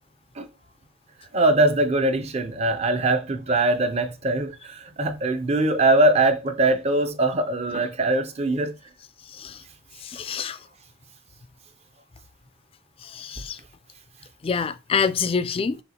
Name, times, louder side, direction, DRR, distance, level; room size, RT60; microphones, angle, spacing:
voice 1, 1.3-8.7, right 2 dB, 35° right, 0.5 m, -22 dB
voice 2, 10.0-10.6 13.0-13.6 14.4-15.8, left 6 dB, 30° left, 0.3 m, -26 dB
6.5 x 2.4 x 2.8 m
head